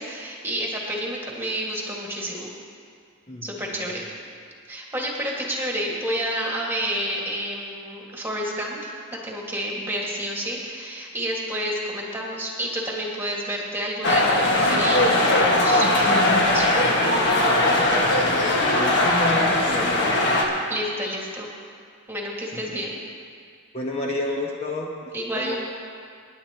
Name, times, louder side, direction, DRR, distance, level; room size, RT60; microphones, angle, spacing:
voice 1, 0.0-2.5 3.4-4.1 4.7-16.8 20.7-21.5 22.1-23.0 25.1-25.6, equal, 10° right, -3 dB, 1.7 m, -29 dB
voice 2, 3.3-4.0 17.4-20.3 22.5-22.8 23.7-25.6, left 1 dB, 30° left, -2 dB, 1.0 m, -31 dB
sound 1, 14.0-20.4, left 1 dB, 55° left, 1.6 m, -20 dB
24.5 x 10.5 x 2.9 m, 2.2 s
head